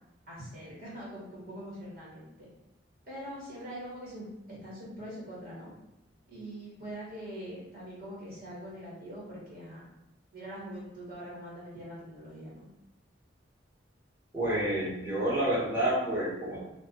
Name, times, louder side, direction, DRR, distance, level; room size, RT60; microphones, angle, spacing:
voice 1, 0.2-2.5 3.0-5.7 6.3-9.9 10.3-12.7, equal, 50° right, -7 dB, 1.3 m, -43 dB
voice 2, 14.3-16.6, right 1 dB, 10° right, -11 dB, 1.1 m, -29 dB
2.7 x 2.4 x 3.6 m, 0.91 s
head